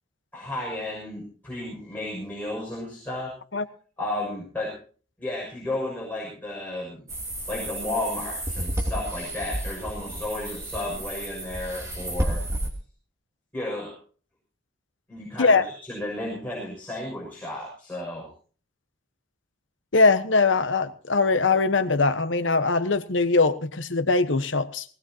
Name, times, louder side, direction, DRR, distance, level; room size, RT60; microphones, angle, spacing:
voice 1, 0.3-3.3 4.0-4.7 5.2-7.0 7.5-12.4 13.5-13.9 15.1-18.3, left 1 dB, 10° left, -4 dB, 6.6 m, -33 dB
sound 1, 7.1-12.7, right 1 dB, 15° right, 3.1 m, -31 dB
voice 2, 19.9-24.8, left 3 dB, 75° left, 10 dB, 1.3 m, -21 dB
19.5 x 18.5 x 2.9 m, 0.41 s
head